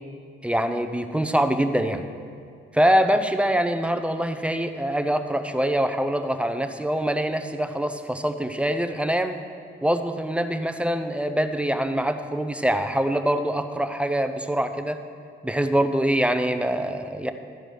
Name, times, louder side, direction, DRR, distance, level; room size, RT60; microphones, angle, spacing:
voice 1, 0.4-2.0 2.7-9.4 9.8-15.0 15.4-17.3, right 1 dB, 5° right, 8 dB, 0.6 m, -24 dB
12.5 x 4.9 x 6.4 m, 2.3 s
cardioid pair, 90°, 20 cm